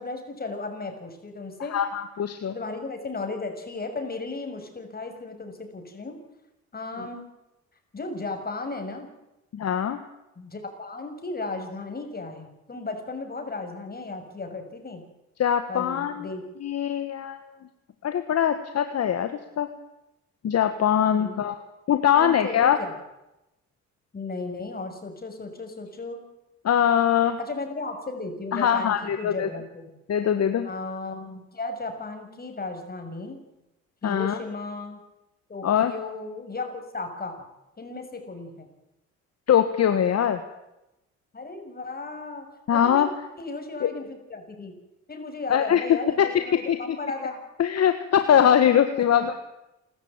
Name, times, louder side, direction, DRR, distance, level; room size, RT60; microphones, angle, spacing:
voice 1, 0.0-1.8 2.5-6.2 6.7-7.2 7.9-9.1 10.4-15.0 15.7-16.4 21.1-21.4 22.1-22.9 24.1-26.2 27.4-29.9 30.6-33.4 34.0-35.0 35.5-37.5 37.8-38.7 41.3-43.1 43.4-44.7 45.1-47.4 48.9-49.4, left 3 dB, 30° left, 5 dB, 6.3 m, -35 dB
voice 2, 1.7-2.5 9.5-10.0 15.4-16.3 16.6-17.5 18.0-19.7 20.4-21.6 21.9-22.8 26.6-27.4 28.5-29.5 30.1-30.7 34.0-34.4 35.6-35.9 39.5-40.4 42.7-43.1 43.8-43.9 45.5-46.8 47.6-49.4, left 9 dB, 55° left, 9 dB, 1.6 m, -22 dB
29.5 x 13.5 x 8.9 m, 0.94 s
cardioid pair, 90°, 30 cm